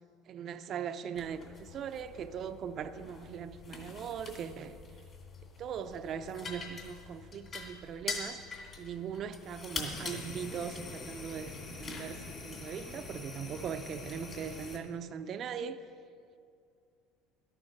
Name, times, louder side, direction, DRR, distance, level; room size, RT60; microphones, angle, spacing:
voice 1, 0.3-4.8 5.6-8.4 8.8-11.5 11.8-15.8, right 7 dB, 45° right, 0.6 m, -40 dB
sound 1, 1.1-14.8, left 3 dB, 35° left, 2.4 m, -44 dB
12.0 x 9.2 x 6.0 m
supercardioid pair, 115°, 0 cm